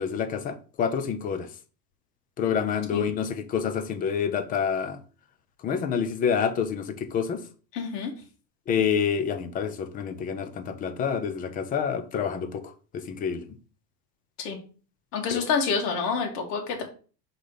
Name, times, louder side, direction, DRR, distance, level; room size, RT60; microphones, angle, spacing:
voice 1, 0.0-1.5 2.4-5.0 5.6-7.4 8.7-12.6 12.9-13.4 15.3-15.4, left 7 dB, 20° left, 0.4 m, -28 dB
voice 2, 7.7-8.1 14.4-14.6 15.1-16.8, left 5 dB, 70° left, 2.3 m, -27 dB
5.8 x 4.0 x 4.9 m
supercardioid pair, 145°, 48 cm